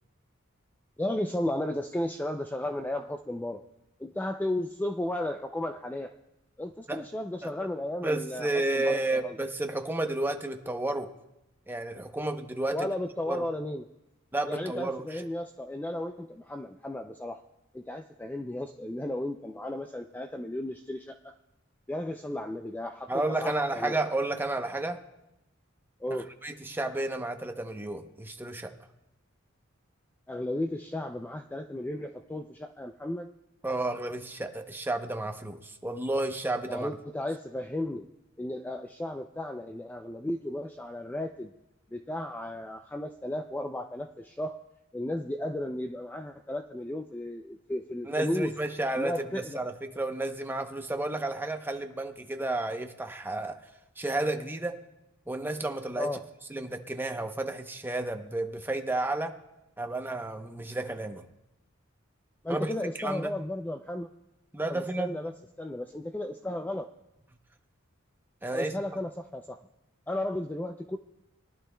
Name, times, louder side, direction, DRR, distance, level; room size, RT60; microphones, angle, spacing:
voice 1, 1.0-3.6 4.0-6.1 6.6-9.4 12.7-13.9 14.5-17.4 17.7-21.4 21.9-24.0 26.0-26.3 30.3-33.3 36.7-38.1 38.4-41.5 41.9-44.6 44.9-48.5 48.9-49.6 56.0-56.2 62.4-64.1 64.7-66.9 68.5-69.6 70.1-71.0, left 1 dB, 10° left, 5 dB, 0.3 m, -34 dB
voice 2, 8.0-11.1 11.7-12.9 13.3-13.4 14.3-15.3 23.1-25.0 26.1-28.7 33.6-36.9 48.1-53.6 54.0-54.8 55.3-56.1 56.5-59.4 59.8-61.2 62.5-62.7 63.0-63.3 64.5-65.2 68.4-68.7, right 2 dB, 10° right, 5 dB, 0.8 m, -32 dB
22.0 x 11.5 x 2.2 m, 0.93 s
head